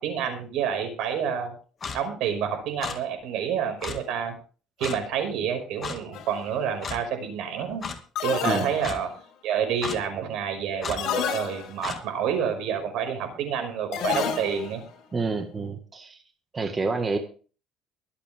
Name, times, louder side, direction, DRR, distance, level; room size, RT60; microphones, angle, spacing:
voice 1, 0.0-1.5 1.9-4.3 4.8-7.9 8.2-9.1 9.4-14.8, right 7 dB, 70° right, 6 dB, 5.6 m, -28 dB
Clock, 1.8-2.0 2.8-3.0 3.8-4.0 4.8-5.0 5.8-6.0 6.8-7.0 7.8-8.0 8.8-9.0 9.8-10.0 10.8-11.0 11.8-12.0, left 5 dB, 30° left, 2.1 m, -33 dB
sound 1, 6.1-6.5 8.2-9.2 11.0-12.0 13.9-14.8, left 8 dB, 60° left, 4.5 m, -30 dB
voice 2, 15.1-16.2 16.5-17.2, right 4 dB, 25° right, 5 dB, 1.7 m, -28 dB
23.5 x 8.4 x 3.6 m, 0.37 s
cardioid pair, 140°, 0 cm